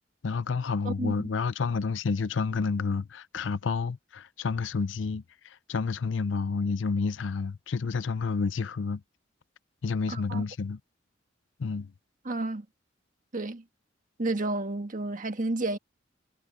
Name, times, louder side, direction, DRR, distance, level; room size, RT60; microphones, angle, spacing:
voice 1, 0.2-9.0 9.8-10.8 11.6-11.9, left 4 dB, 80° left, 0.5 m, -30 dB
voice 2, 10.1-10.4 12.2-12.6 13.3-13.6 14.2-15.8, right 2 dB, 45° right, 1.6 m, -31 dB
head